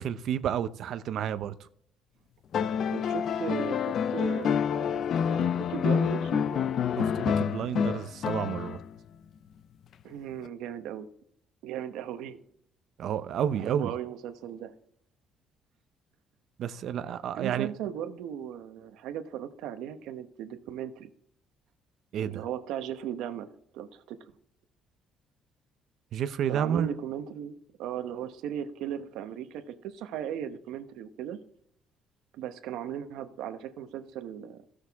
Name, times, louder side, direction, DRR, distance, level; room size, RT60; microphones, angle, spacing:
voice 1, 0.0-1.5 7.0-8.8 13.0-13.9 16.6-17.7 22.1-22.4 26.1-26.9, right 9 dB, 55° right, 0.6 m, -30 dB
sound 1, 2.5-9.0 10.5-10.6, left 7 dB, 45° left, 0.3 m, -28 dB
voice 2, 2.9-6.6 10.0-11.1 11.6-12.4 13.5-14.7 17.3-21.1 22.2-23.5 23.7-24.3 26.5-31.4 32.3-34.6, right 9 dB, 90° right, 1.0 m, -37 dB
15.5 x 6.5 x 3.5 m
cardioid pair, 160°, 0 cm